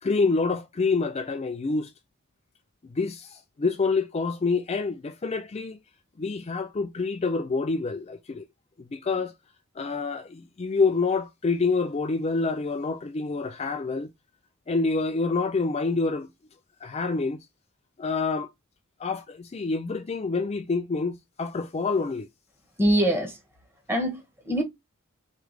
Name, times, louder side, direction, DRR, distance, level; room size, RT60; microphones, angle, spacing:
voice 1, 0.0-1.9 2.9-5.8 6.2-8.5 8.8-9.3 9.8-14.1 14.7-16.3 16.8-17.4 18.0-18.5 19.0-22.3, left 4 dB, 30° left, 0.4 m, -27 dB
voice 2, 22.8-23.4 23.9-24.6, right 1 dB, 10° right, 1.4 m, -24 dB
4.8 x 3.3 x 3.2 m
head